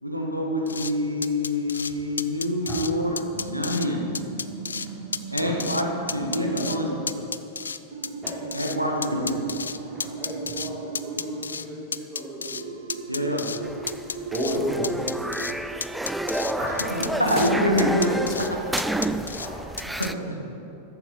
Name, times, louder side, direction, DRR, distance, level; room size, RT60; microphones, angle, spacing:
voice 1, 0.0-4.0 5.3-5.9 6.1-6.9 8.5-9.4 13.1-13.4 17.3-18.6, left 1 dB, 90° right, 1 dB, 1.7 m, -26 dB
sound 1, 0.7-0.9 1.2-1.9 2.2-2.9 3.2-3.9 4.1-4.9 5.1-5.8 6.1-6.8 7.1-8.8 9.0-10.7 10.9-11.7 11.9-12.6 12.9-13.6 13.9-14.6 14.8-15.5 15.8-16.5 16.8-17.5 17.8-18.5 18.8-19.5 19.8-20.1, left 5 dB, 75° left, 0.4 m, -32 dB
sound 2, 3.3-6.8 7.9-11.4 12.6-15.7 16.4-18.8, right 5 dB, 70° right, 0.9 m, -38 dB
voice 2, 6.4-7.3 8.8-9.3 17.2-17.4 19.9-20.5, right 1 dB, 90° left, 0 dB, 1.7 m, -34 dB
voice 3, 9.8-12.6 14.3-15.5 16.0-16.7 19.1-19.5, equal, 20° right, -9 dB, 3.6 m, -33 dB
sound 3, 13.6-20.1, right 1 dB, 5° right, 0.4 m, -30 dB
14.5 x 11.0 x 4.3 m, 2.8 s
figure-of-eight pair, 90°, 0 cm